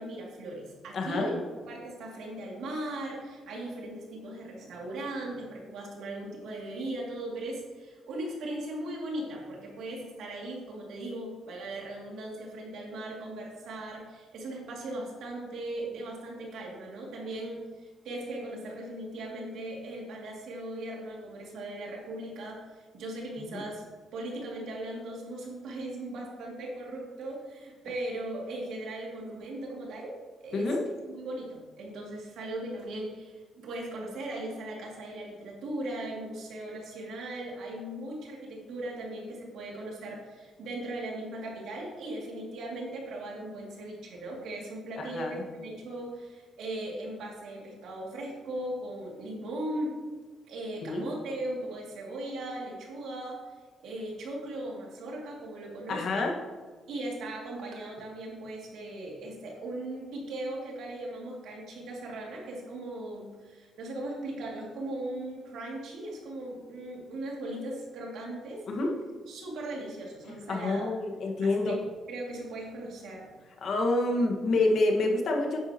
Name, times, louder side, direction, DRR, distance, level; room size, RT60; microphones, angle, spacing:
voice 1, 0.0-23.8 24.1-30.2 30.4-30.7 31.1-50.0 50.5-53.4 53.8-56.3 56.9-68.6 69.3-70.9 71.4-71.8 72.1-73.3, right 1 dB, 80° right, -2 dB, 2.5 m, -38 dB
voice 2, 0.9-1.3 23.4-23.6 30.5-30.8 45.0-45.4 50.8-51.1 55.9-56.3 68.7-68.9 70.5-71.8 73.6-75.6, left 2 dB, 60° left, 1 dB, 1.6 m, -27 dB
9.6 x 8.3 x 3.0 m, 1.4 s
cardioid pair, 90°, 0 cm